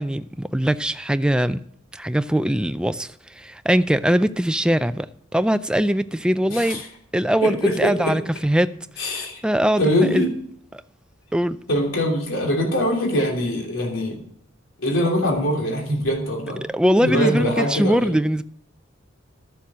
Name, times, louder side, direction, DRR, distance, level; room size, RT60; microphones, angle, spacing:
voice 1, 0.0-1.6 1.9-5.1 5.3-6.8 7.1-8.7 9.1-10.3 10.7-10.8 11.3-11.6 16.7-18.4, equal, 5° right, 0.4 m, -21 dB
voice 2, 6.5-6.8 7.4-8.1 9.0-9.4 9.8-10.3 11.7-14.2 14.8-16.6 17.0-18.1, equal, 75° left, 3.1 m, -23 dB
13.0 x 7.0 x 6.2 m
head